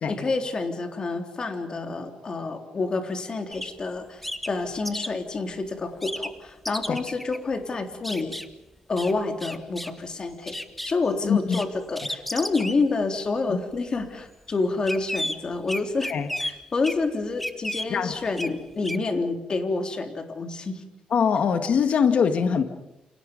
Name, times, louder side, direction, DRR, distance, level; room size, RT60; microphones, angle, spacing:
voice 1, 0.1-8.4 8.9-16.1 16.4-20.8, left 3 dB, 35° left, 5 dB, 3.6 m, -28 dB
sound 1, 3.5-3.7 4.2-5.1 6.0-6.3 6.7-7.4 8.0-8.5 9.0-9.1 9.4-10.0 10.3-10.9 11.5-11.6 12.0-13.0 13.7-14.1 14.9-15.4 15.7-16.5 16.8-17.0 17.4-17.9 18.4-18.6 18.8-19.0, left 1 dB, 5° left, 1.6 m, -32 dB
voice 2, 11.2-11.6 13.5-13.6 16.1-16.3 17.9-18.1 21.1-22.6, left 6 dB, 55° left, 7 dB, 2.0 m, -22 dB
29.5 x 29.0 x 5.4 m, 0.89 s
cardioid pair, 130°, 3 cm